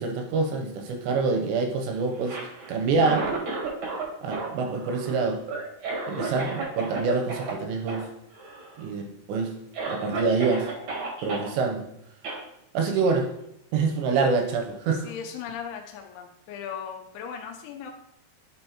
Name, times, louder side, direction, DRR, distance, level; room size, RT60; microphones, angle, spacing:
voice 1, 0.0-3.3 4.2-5.4 6.1-8.1 8.8-9.5 9.9-10.7 11.2-11.9 12.7-13.3 13.7-15.1, right 4 dB, 80° right, 3 dB, 2.7 m, -26 dB
Cough, 2.1-4.0 4.3-7.0 7.3-7.5 7.9-8.0 8.3-8.8 9.3-9.4 9.7-11.5 12.2-12.4, right 3 dB, 60° right, 1.9 m, -33 dB
voice 2, 14.9-17.9, left 7 dB, 85° left, 3 dB, 3.0 m, -38 dB
10.5 x 5.3 x 2.8 m, 0.78 s
omnidirectional pair, 5.4 m